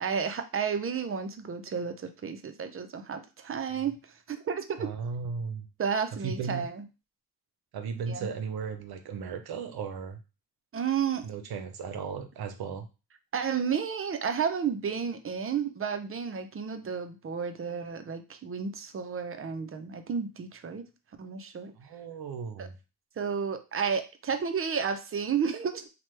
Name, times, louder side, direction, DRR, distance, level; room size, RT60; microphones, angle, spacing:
voice 1, 0.0-4.0 4.3-4.9 5.8-6.8 8.1-8.3 10.7-11.3 13.3-20.9 21.2-21.7 22.6-22.7 23.2-25.9, right 6 dB, 35° right, 8 dB, 0.5 m, -32 dB
voice 2, 4.8-5.7 6.2-6.7 7.7-10.2 11.2-12.9 21.8-22.7, right 5 dB, 80° right, 7 dB, 0.6 m, -36 dB
2.9 x 2.2 x 3.1 m, 0.30 s
cardioid pair, 65°, 38 cm